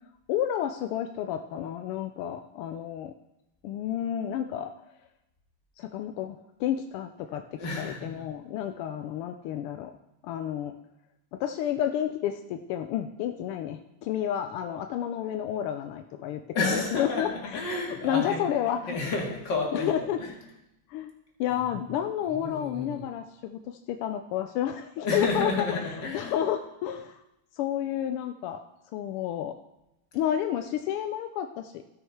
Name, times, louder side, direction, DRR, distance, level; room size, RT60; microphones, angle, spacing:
voice 1, 0.3-3.1 3.6-4.7 5.8-9.9 10.2-10.7 11.4-16.4 16.7-17.3 17.9-19.0 19.7-20.2 20.9-21.1 21.4-25.7 26.1-27.2 27.5-28.6 28.9-29.6 30.1-31.9, left 10 dB, 90° left, 7 dB, 1.5 m, -30 dB
voice 2, 7.6-8.3 16.5-18.5 18.9-20.3 21.5-21.8 22.3-23.0 25.0-26.4, left 3 dB, 55° left, -1 dB, 2.7 m, -31 dB
15.0 x 6.4 x 4.6 m, 0.92 s
omnidirectional pair, 2.4 m